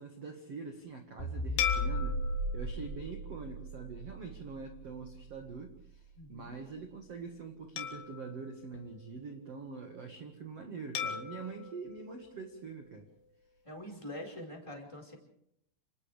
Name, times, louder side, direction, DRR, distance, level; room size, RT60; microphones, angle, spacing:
voice 1, 0.0-2.2 2.5-13.1, right 4 dB, 80° right, 3 dB, 1.4 m, -44 dB
sound 1, 1.2-5.7, equal, 25° left, 1.7 m, -37 dB
sound 2, 1.6-4.3 4.8-5.0 7.8-9.6 11.0-13.2, left 8 dB, 80° left, 4.8 m, -40 dB
voice 2, 6.1-6.6 13.6-15.2, left 1 dB, 5° left, 0 dB, 4.2 m, -44 dB
29.0 x 28.0 x 3.5 m, 0.75 s
omnidirectional pair, 5.9 m